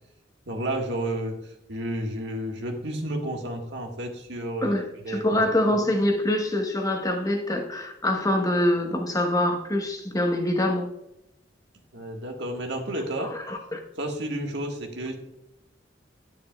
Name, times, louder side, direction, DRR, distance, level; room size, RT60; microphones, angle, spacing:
voice 1, 0.5-4.8 5.0-5.4 5.7-5.8 11.9-13.3 14.0-15.2, right 1 dB, 70° right, 2 dB, 1.6 m, -31 dB
voice 2, 4.6-10.9 13.2-13.8, left 1 dB, 20° left, 2 dB, 1.2 m, -25 dB
10.5 x 9.9 x 2.3 m, 0.85 s
head